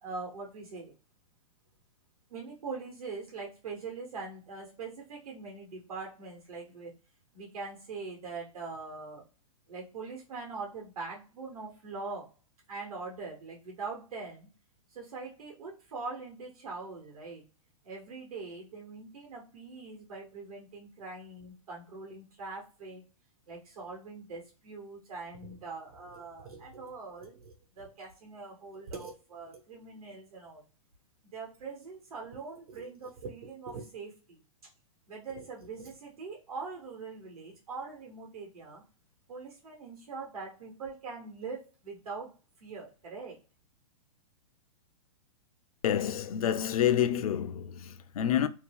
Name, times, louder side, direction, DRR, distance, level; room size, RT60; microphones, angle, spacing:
voice 1, 0.0-0.9 2.3-6.9 7.3-9.2 9.7-12.3 12.7-14.5 14.9-17.4 17.8-23.0 23.5-30.6 31.2-34.4 35.1-38.8 39.3-43.4, right 4 dB, 80° right, 1.1 m, -42 dB
voice 2, 45.8-48.5, left 10 dB, 75° left, 0.4 m, -28 dB
2.7 x 2.2 x 3.3 m
hypercardioid pair, 125°, 18 cm